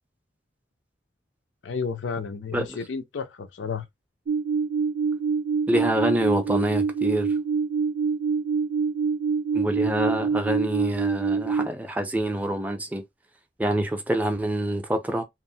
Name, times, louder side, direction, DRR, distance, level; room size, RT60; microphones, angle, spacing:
voice 1, 1.6-3.9, left 5 dB, 80° left, 0.4 m, -32 dB
sound 1, 4.3-11.7, right 5 dB, 75° right, 0.3 m, -25 dB
voice 2, 5.7-7.3 9.5-13.0 13.6-15.2, right 1 dB, 10° right, 0.4 m, -26 dB
2.9 x 2.0 x 2.6 m
head